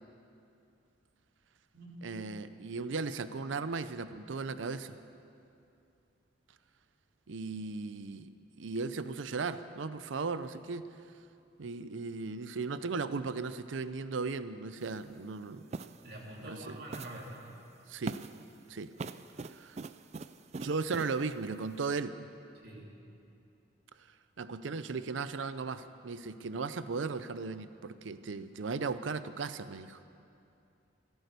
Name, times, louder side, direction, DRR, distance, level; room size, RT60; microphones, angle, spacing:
voice 1, 2.0-5.0 7.3-8.3 8.6-10.8 11.6-15.7 16.4-16.8 17.9-18.2 18.7-18.9 19.5-19.8 20.6-22.2 24.4-30.0, right 4 dB, 85° right, 12 dB, 0.6 m, -36 dB
sound 1, 14.8-15.0 15.7-16.1 16.9-17.3 18.0-18.5 19.0-21.2, right 3 dB, 35° right, 0.4 m, -42 dB
voice 2, 16.0-17.5 22.6-22.9, right 1 dB, 60° right, -3 dB, 2.8 m, -45 dB
15.0 x 14.0 x 6.7 m, 2.6 s
head